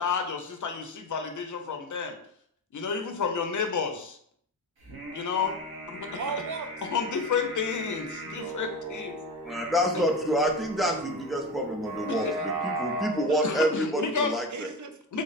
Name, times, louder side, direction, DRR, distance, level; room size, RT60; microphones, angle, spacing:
voice 1, 0.0-2.2 2.7-4.2 5.1-5.6 5.9-6.2 6.9-9.2 12.0-12.3 13.4-14.3 15.1-15.2, left 5 dB, 55° left, 5 dB, 0.5 m, -30 dB
sound 1, 4.8-13.3, right 2 dB, 80° right, 1.1 m, -37 dB
voice 2, 6.2-6.7 10.0-10.1 13.3-13.4 14.0-15.2, right 5 dB, 55° right, 6 dB, 0.4 m, -36 dB
voice 3, 9.4-14.5, equal, ahead, 1 dB, 0.5 m, -27 dB
3.5 x 2.1 x 3.9 m, 0.66 s
wide cardioid pair, 135°, 36 cm